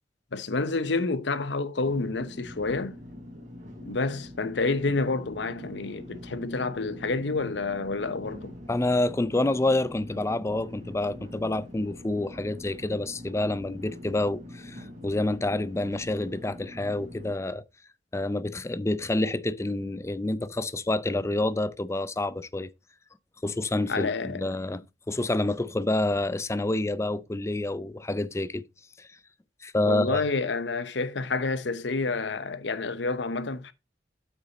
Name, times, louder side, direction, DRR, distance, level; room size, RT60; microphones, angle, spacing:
voice 1, 0.3-3.0 3.8-8.5 23.9-24.5 29.8-33.7, left 3 dB, 75° left, 0.8 m, -29 dB
sound 1, 1.8-17.3, left 1 dB, 45° right, 3.5 m, -44 dB
voice 2, 8.7-17.6 18.1-22.7 23.4-24.8 25.1-28.6 29.0-29.1 29.6-30.2, left 2 dB, 15° left, 0.4 m, -28 dB
8.2 x 6.2 x 4.1 m
head